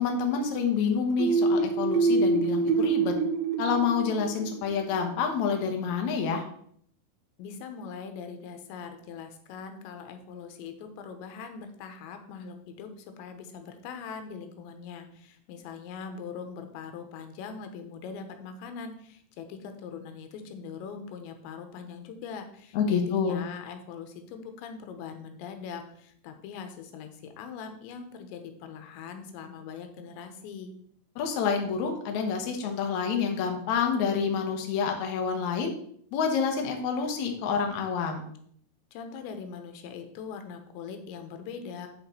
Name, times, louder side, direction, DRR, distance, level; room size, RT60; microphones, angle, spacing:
voice 1, 0.0-3.1 3.6-6.4 22.7-23.4 31.2-35.7 36.1-38.2, left 6 dB, 70° left, 3 dB, 1.7 m, -28 dB
sound 1, 1.2-4.9, right 4 dB, 90° right, 3.2 m, -26 dB
voice 2, 7.4-30.7 38.9-41.9, left 6 dB, 90° left, 7 dB, 3.3 m, -41 dB
8.8 x 5.9 x 4.4 m, 0.63 s
omnidirectional pair, 5.1 m